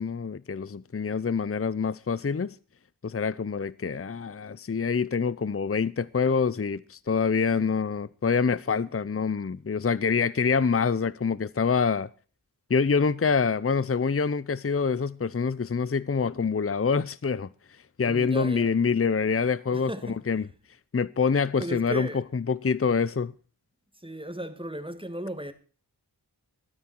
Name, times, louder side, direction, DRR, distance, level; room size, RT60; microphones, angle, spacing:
voice 1, 0.0-2.6 3.0-12.1 12.7-17.5 18.0-19.9 20.3-20.5 20.9-22.1 22.3-23.3, left 5 dB, 35° left, 0.6 m, -26 dB
voice 2, 18.0-18.7 19.7-20.2 21.6-22.2 24.0-25.5, equal, 15° right, 2.2 m, -36 dB
21.5 x 9.6 x 4.5 m
wide cardioid pair, 60°, 40 cm